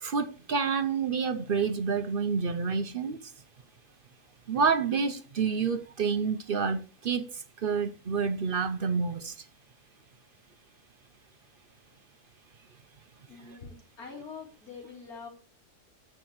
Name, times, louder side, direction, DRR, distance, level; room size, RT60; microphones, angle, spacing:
voice 1, 0.0-3.2 4.5-7.2 7.6-9.3, right 5 dB, 50° right, 0.7 m, -28 dB
voice 2, 13.3-15.3, left 5 dB, 75° left, 3.7 m, -44 dB
15.5 x 5.8 x 3.0 m
omnidirectional pair, 1.6 m